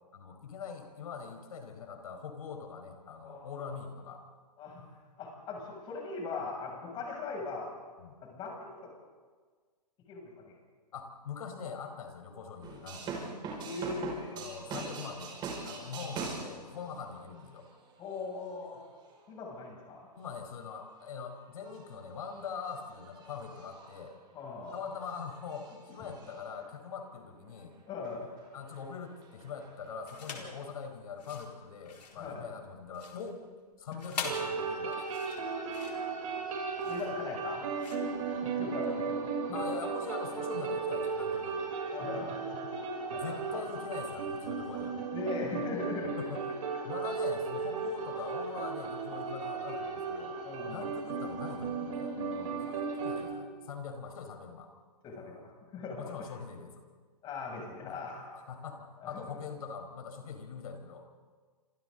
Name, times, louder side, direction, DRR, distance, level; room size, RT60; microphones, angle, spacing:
voice 1, 0.1-4.2 8.0-8.2 10.9-13.4 14.3-17.7 20.2-24.1 24.7-27.8 28.5-33.4 33.8-35.0 39.5-41.6 42.5-42.8 43.1-45.0 46.2-46.4 46.8-52.1 52.6-54.7 56.0-56.8 57.9-61.1, left 6 dB, 60° left, 5 dB, 4.7 m, -43 dB
voice 2, 3.2-3.7 4.6-4.8 5.2-7.7 8.2-8.9 10.1-10.5 13.6-14.4 18.0-18.8 19.3-20.1 24.3-24.8 27.9-28.3 30.4-30.5 32.2-32.5 36.9-39.6 41.9-42.4 43.1-43.6 45.1-46.1 50.4-50.9 52.1-52.7 55.0-55.4 55.7-56.0 57.2-58.3 59.0-59.1, left 3 dB, 20° left, -1 dB, 7.4 m, -40 dB
sound 1, 12.6-19.4 20.2-20.7 21.0-21.3 21.5-27.6 27.9-30.4, right 4 dB, 20° right, 5.5 m, -45 dB
sound 2, 30.0-30.6 31.1-38.9, left 5 dB, 75° left, 4.4 m, -44 dB
sound 3, 34.2-53.3, right 5 dB, 55° right, 7.3 m, -35 dB
28.5 x 27.0 x 4.0 m, 1.5 s
hypercardioid pair, 140°, 21 cm